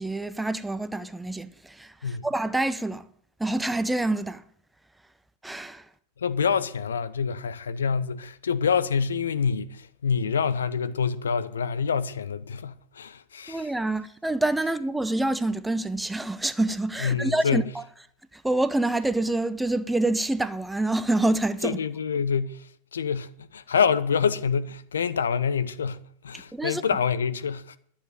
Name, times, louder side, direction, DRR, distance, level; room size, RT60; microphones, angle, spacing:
voice 1, 0.0-3.0 3.4-4.4 5.4-5.8 13.5-17.8 18.3-21.8 26.5-26.8, right 2 dB, 5° right, 0.7 m, -27 dB
voice 2, 6.2-13.7 17.0-17.7 21.6-27.8, left 6 dB, 70° left, 0.7 m, -27 dB
11.0 x 7.2 x 9.5 m
figure-of-eight pair, 90°, 0 cm